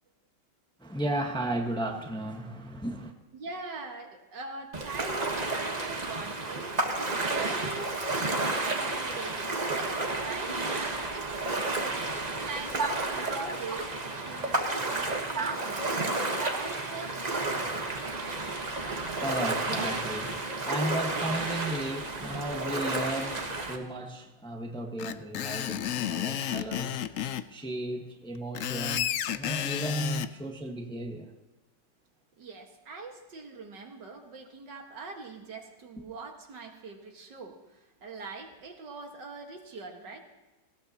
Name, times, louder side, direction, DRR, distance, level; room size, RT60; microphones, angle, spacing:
voice 1, 0.8-3.1 12.8-12.9 13.3-13.8 14.3-15.8 16.4-16.6 17.3-17.4 17.8-27.0 27.5-31.3, right 1 dB, 5° left, 2 dB, 1.2 m, -35 dB
voice 2, 3.3-6.8 7.3-11.6 12.4-13.9 14.2-18.0 19.0-19.1 32.4-40.2, right 4 dB, 75° right, 3 dB, 2.3 m, -43 dB
Ocean, 4.7-23.8, right 2 dB, 25° right, 1.2 m, -31 dB
Screech, 25.0-27.5 28.4-30.3, left 11 dB, 70° left, 0.8 m, -32 dB
19.5 x 16.5 x 2.9 m, 1.1 s
omnidirectional pair, 1.9 m